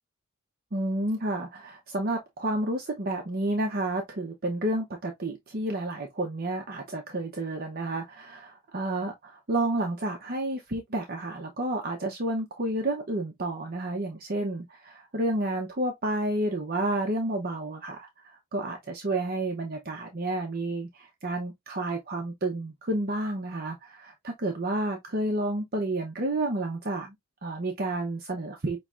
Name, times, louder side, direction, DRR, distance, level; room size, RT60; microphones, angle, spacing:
voice 1, 0.7-27.1 27.4-28.8, right 1 dB, 45° right, 0.8 m, -30 dB
5.7 x 3.1 x 2.4 m
head